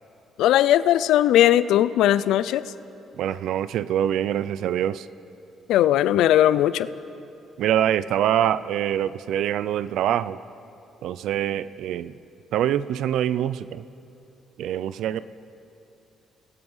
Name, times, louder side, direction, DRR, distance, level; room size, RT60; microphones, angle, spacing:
voice 1, 0.4-2.6 5.7-6.9, left 12 dB, 85° left, 16 dB, 0.6 m, -18 dB
voice 2, 3.2-5.1 7.6-10.4 11.0-12.1 12.5-13.8 14.6-15.2, right 11 dB, 80° right, 16 dB, 0.5 m, -24 dB
29.0 x 19.5 x 5.6 m, 2.8 s
cardioid pair, 90°, 0 cm